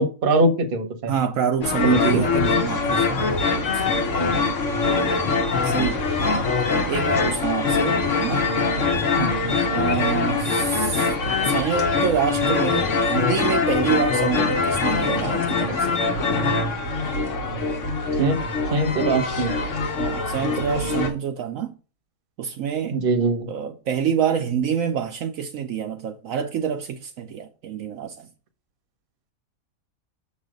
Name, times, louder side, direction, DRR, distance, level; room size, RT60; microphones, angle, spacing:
voice 1, 0.0-1.1 1.8-2.2 4.2-4.5 5.8-5.9 9.2-9.4 18.2-18.4 18.7-19.5 22.9-23.5, right 2 dB, 45° right, 1.0 m, -22 dB
voice 2, 1.1-3.5 3.7-4.0 5.5-6.0 6.9-8.5 9.7-11.1 11.4-16.0 20.0-21.8 22.4-23.0 23.5-28.3, right 8 dB, 70° right, 1.0 m, -27 dB
sound 1, 1.6-21.1, left 4 dB, 60° left, 1.3 m, -23 dB
6.9 x 3.2 x 5.1 m
omnidirectional pair, 1.5 m